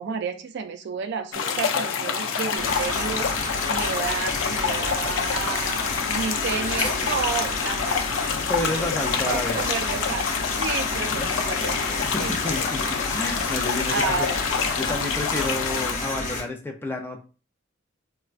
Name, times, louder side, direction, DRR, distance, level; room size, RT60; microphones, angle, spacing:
voice 1, 0.0-8.0 9.2-12.4 13.9-14.4, right 5 dB, 60° right, 9 dB, 0.4 m, -31 dB
sound 1, 1.3-15.9, left 6 dB, 80° left, 0.5 m, -27 dB
sound 2, 2.6-16.4, left 2 dB, 40° left, 0.8 m, -31 dB
sound 3, 2.7-16.0, left 1 dB, 10° right, 1.7 m, -44 dB
voice 2, 8.5-9.6 12.0-14.3 14.7-17.2, left 2 dB, 10° left, 2 dB, 0.4 m, -30 dB
4.2 x 2.2 x 2.4 m, 0.36 s
head